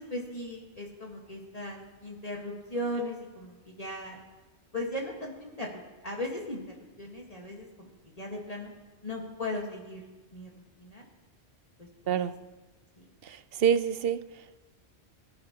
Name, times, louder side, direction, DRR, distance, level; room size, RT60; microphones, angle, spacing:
voice 1, 0.0-4.2 4.7-7.9 8.2-8.7 9.0-10.0 10.3-11.1 11.8-12.3 13.0-13.1, left 1 dB, 35° left, -2 dB, 1.6 m, -38 dB
voice 2, 13.2-14.6, right 8 dB, 60° right, 13 dB, 0.7 m, -28 dB
24.0 x 12.0 x 2.9 m, 1.2 s
omnidirectional pair, 1.2 m